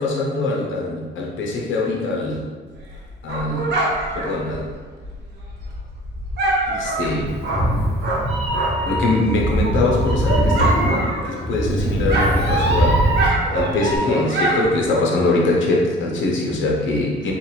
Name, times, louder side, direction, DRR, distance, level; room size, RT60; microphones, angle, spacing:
voice 1, 0.0-2.5 3.2-3.7 4.1-4.7 6.7-7.4 8.8-13.1 13.5-17.3, left 2 dB, 75° left, -1 dB, 0.9 m, -23 dB
Dog, 2.7-9.0 9.4-11.7 11.9-15.4, right 1 dB, 60° right, 1.0 m, -25 dB
Meow, 7.3-14.0, right 1 dB, 55° left, 1.2 m, -21 dB
3.5 x 2.4 x 4.2 m, 1.4 s
cardioid pair, 90°, 20 cm